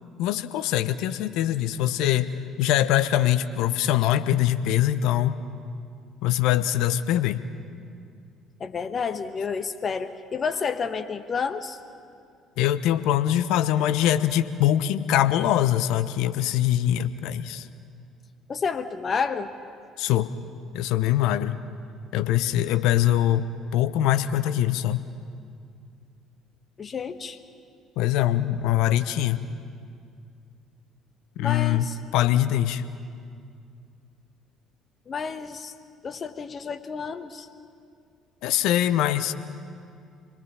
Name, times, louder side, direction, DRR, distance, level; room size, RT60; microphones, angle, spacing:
voice 1, 0.2-2.3 2.6-5.4 6.2-7.4 12.6-17.7 20.0-20.3 20.7-21.6 22.1-23.5 23.7-25.0 28.0-29.4 31.4-32.8 38.4-39.3, left 12 dB, 65° left, 12 dB, 0.9 m, -23 dB
voice 2, 8.6-11.8 18.5-19.5 26.8-27.4 31.4-32.0 35.1-35.7 36.0-37.5, left 5 dB, 40° left, 10 dB, 1.2 m, -30 dB
28.5 x 20.5 x 5.7 m, 2.4 s
hypercardioid pair, 55°, 0 cm